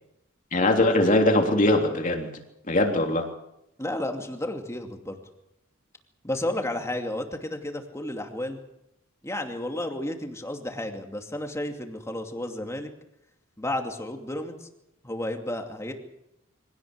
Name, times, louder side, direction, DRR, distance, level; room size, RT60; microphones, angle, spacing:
voice 1, 0.5-2.3 2.7-3.3, left 1 dB, 40° left, 3 dB, 3.4 m, -21 dB
voice 2, 3.8-5.2 6.2-8.6 9.2-12.9 13.6-14.7 15.0-15.9, left 1 dB, 15° left, 4 dB, 2.5 m, -32 dB
24.5 x 17.5 x 8.1 m, 0.84 s
head